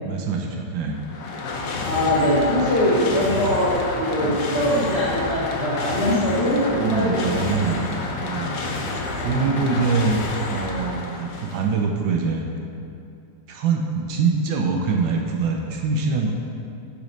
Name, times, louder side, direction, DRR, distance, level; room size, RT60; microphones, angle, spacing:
voice 1, 0.0-1.0 4.2-4.4 6.7-8.6 9.2-12.5 13.5-16.3, right 4 dB, 75° right, 1 dB, 1.4 m, -24 dB
sound 1, 0.9-11.8, left 3 dB, 60° left, 0.9 m, -29 dB
voice 2, 1.8-7.4 7.7-7.8 9.2-9.5, equal, 35° left, -11 dB, 1.3 m, -22 dB
8.2 x 4.1 x 5.1 m, 2.5 s
omnidirectional pair, 2.1 m